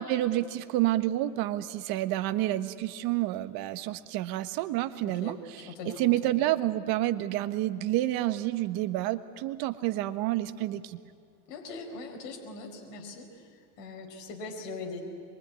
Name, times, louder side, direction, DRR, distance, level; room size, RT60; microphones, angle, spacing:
voice 1, 0.0-5.4 5.8-11.0, right 15 dB, 45° right, 10 dB, 1.3 m, -29 dB
voice 2, 5.0-5.4 5.7-6.3 11.5-13.5 13.8-15.0, left 3 dB, 55° left, 1 dB, 4.8 m, -41 dB
24.5 x 23.0 x 9.7 m, 2.3 s
supercardioid pair, 130°, 49 cm